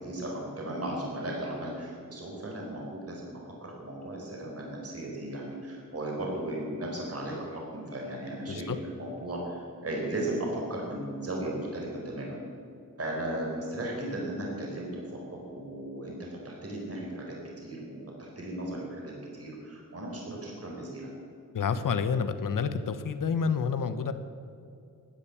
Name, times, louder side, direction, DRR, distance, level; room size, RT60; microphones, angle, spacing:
voice 1, 0.0-12.4 13.0-15.2 15.5-21.1, right 1 dB, 45° right, -2 dB, 4.5 m, -36 dB
voice 2, 21.5-24.1, left 6 dB, 75° left, 10 dB, 1.1 m, -29 dB
16.0 x 10.5 x 8.6 m, 2.5 s
wide cardioid pair, 145°, 33 cm